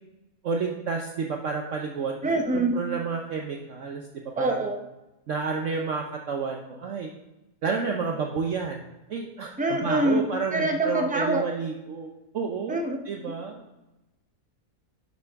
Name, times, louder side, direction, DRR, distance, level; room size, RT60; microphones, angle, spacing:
voice 1, 0.4-2.2 2.5-4.6 5.3-7.1 7.6-8.8 9.1-12.8 13.0-13.6, right 5 dB, 60° right, 2 dB, 1.0 m, -30 dB
voice 2, 2.2-2.8 4.4-4.8 9.6-10.2 10.5-11.5 12.7-13.0, right 2 dB, 10° right, 4 dB, 0.4 m, -25 dB
11.5 x 7.1 x 3.5 m, 0.99 s
omnidirectional pair, 1.7 m